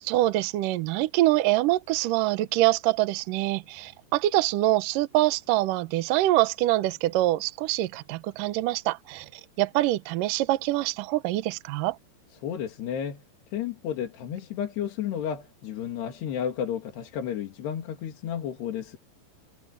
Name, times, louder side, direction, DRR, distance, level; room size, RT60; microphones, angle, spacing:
voice 1, 0.0-9.3 9.6-12.0, right 16 dB, 85° right, 1.9 m, -25 dB
voice 2, 12.4-13.2 13.5-19.0, left 9 dB, 70° left, 4.4 m, -32 dB
omnidirectional pair, 5.0 m